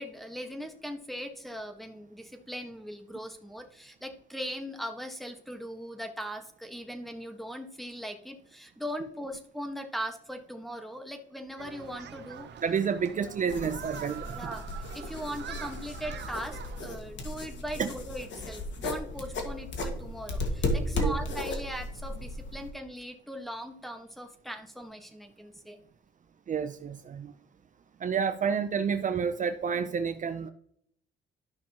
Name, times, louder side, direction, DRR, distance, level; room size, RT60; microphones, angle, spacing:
voice 1, 0.0-12.5 14.3-25.8, equal, ahead, 6 dB, 1.4 m, -39 dB
Human group actions, 11.6-17.0, right 8 dB, 60° right, 0.9 m, -44 dB
voice 2, 12.6-14.4 17.8-17.9 21.0-21.2 26.5-27.3 28.0-30.5, right 6 dB, 40° right, 9 dB, 0.5 m, -29 dB
sound 1, 13.5-22.7, left 1 dB, 65° left, 1.9 m, -35 dB
12.5 x 5.9 x 3.0 m, 0.69 s
cardioid pair, 90°, 20 cm